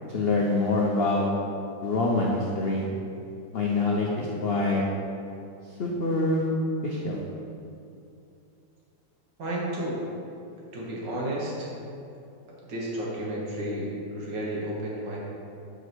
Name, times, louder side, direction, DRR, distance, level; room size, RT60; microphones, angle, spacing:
voice 1, 0.1-1.3 1.8-2.8 3.5-4.8 5.8-6.4 6.8-7.2, left 2 dB, 75° left, -3 dB, 0.5 m, -25 dB
voice 2, 9.4-10.0 10.7-11.7 12.6-15.2, right 1 dB, 70° right, -4 dB, 2.0 m, -32 dB
5.4 x 4.9 x 6.1 m, 2.6 s
omnidirectional pair, 2.0 m